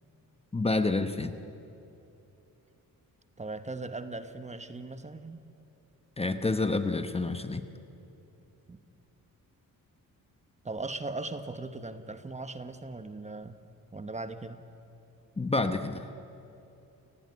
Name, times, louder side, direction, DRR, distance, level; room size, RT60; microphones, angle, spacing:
voice 1, 0.5-1.4 6.2-7.6 15.4-16.1, left 3 dB, 15° left, 9 dB, 1.0 m, -28 dB
voice 2, 3.4-5.4 8.7-8.8 10.6-13.6 13.9-14.6, right 2 dB, 20° right, 10 dB, 1.2 m, -39 dB
29.0 x 18.5 x 9.6 m, 2.8 s
cardioid pair, 125°, 35 cm